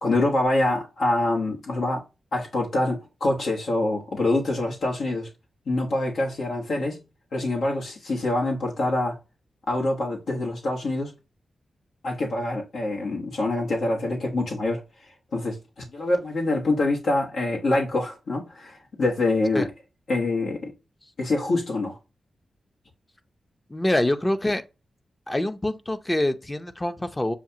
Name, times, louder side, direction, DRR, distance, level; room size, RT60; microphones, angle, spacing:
voice 1, 0.0-2.0 2.3-5.3 5.7-7.0 7.3-9.2 9.7-11.1 12.0-14.8 15.3-15.6 15.9-19.7 20.1-20.7 21.2-22.0, left 2 dB, 75° left, 1.2 m, -25 dB
voice 2, 23.7-24.6 25.3-27.4, left 1 dB, 20° left, 0.7 m, -25 dB
7.0 x 2.4 x 2.8 m
cardioid pair, 50°, 0 cm